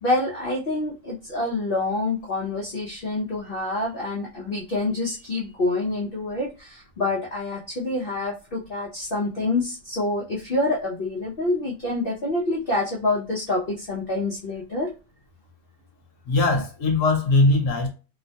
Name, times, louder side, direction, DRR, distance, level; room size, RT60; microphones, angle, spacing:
voice 1, 0.0-14.9, left 2 dB, 75° left, 0.5 m, -27 dB
voice 2, 16.3-17.9, left 2 dB, 55° left, 1.1 m, -20 dB
3.0 x 2.1 x 2.7 m
omnidirectional pair, 1.8 m